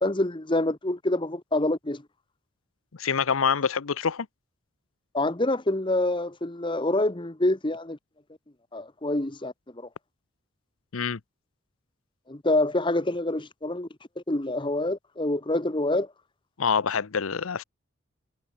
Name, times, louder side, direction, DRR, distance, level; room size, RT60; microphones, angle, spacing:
voice 1, 0.0-2.0 5.1-8.0 8.7-9.9 12.3-13.9 14.2-16.1, left 2 dB, 25° left, 1.1 m, -26 dB
voice 2, 3.0-4.3 10.9-11.2 16.6-17.6, left 6 dB, 85° left, 0.7 m, -26 dB
head